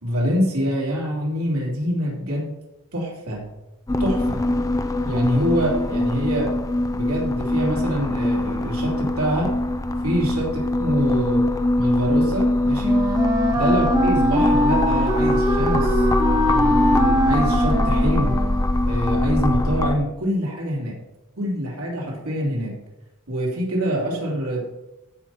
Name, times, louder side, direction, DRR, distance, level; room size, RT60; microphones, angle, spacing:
voice 1, 0.0-2.5 2.9-3.4 4.0-4.4 5.0-6.5 6.9-9.5 10.0-10.5 10.8-11.5 11.8-13.0 13.5-16.1 16.4-18.4 18.8-20.9 21.4-22.7 23.3-24.7, equal, 90° right, -3 dB, 3.3 m, -25 dB
sound 1, 3.9-20.0, left 1 dB, 15° left, 0.5 m, -22 dB
Wind instrument woodwind instrument, 12.8-18.7, equal, 20° right, 1.0 m, -22 dB
15.0 x 5.7 x 4.4 m, 0.97 s
head